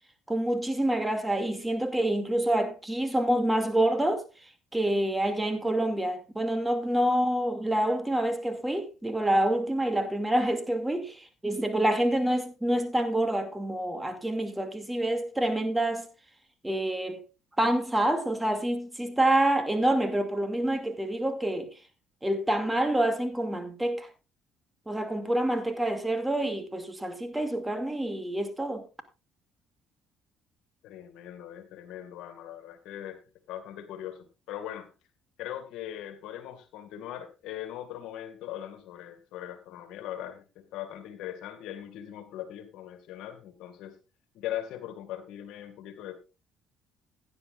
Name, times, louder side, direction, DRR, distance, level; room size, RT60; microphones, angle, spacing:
voice 1, 0.3-4.3 4.7-16.1 16.6-17.2 17.6-21.7 22.2-24.1 24.9-28.8, right 1 dB, 10° right, 2.5 m, -27 dB
voice 2, 30.8-33.2 33.5-34.9 35.4-44.0 44.3-46.1, left 11 dB, 75° left, 2.0 m, -40 dB
16.5 x 10.5 x 2.5 m
supercardioid pair, 65°, 0 cm